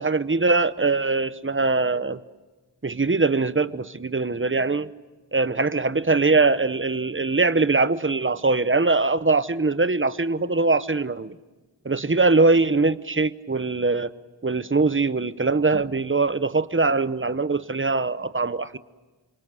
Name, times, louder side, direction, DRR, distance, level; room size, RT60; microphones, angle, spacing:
voice 1, 0.0-2.2 2.8-4.9 5.3-11.3 11.8-14.1 14.4-18.8, right 3 dB, 30° right, 14 dB, 0.9 m, -22 dB
29.0 x 26.5 x 7.7 m, 1.2 s
wide cardioid pair, 60°, 42 cm